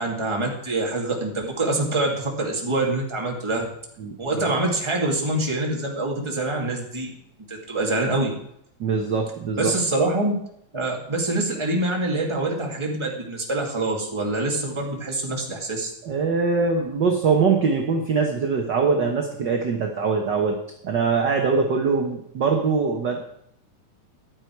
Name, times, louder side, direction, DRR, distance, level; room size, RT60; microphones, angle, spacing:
voice 1, 0.0-3.6 4.2-7.1 7.5-8.3 9.6-10.4 10.7-15.9, right 2 dB, 10° right, -1 dB, 2.0 m, -25 dB
voice 2, 8.8-9.7 16.0-20.5 20.8-23.2, right 5 dB, 50° right, 2 dB, 1.4 m, -22 dB
14.0 x 11.0 x 4.7 m, 0.73 s
omnidirectional pair, 3.5 m